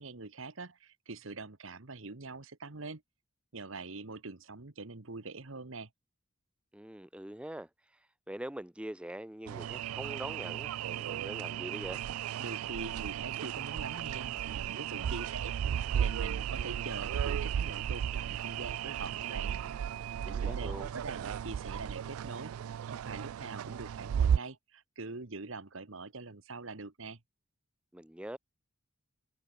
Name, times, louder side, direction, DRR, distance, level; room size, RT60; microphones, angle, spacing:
voice 1, 0.0-3.0 3.5-5.9 12.4-15.5 16.0-19.5 20.2-22.5 22.9-27.2, right 3 dB, 65° right, 1.5 m, -44 dB
voice 2, 6.7-8.0 8.3-12.0 20.2-20.9 27.9-28.4, right 1 dB, 5° right, 0.6 m, -43 dB
sound 1, 9.5-24.4, right 9 dB, 90° right, 0.3 m, -34 dB
open air
head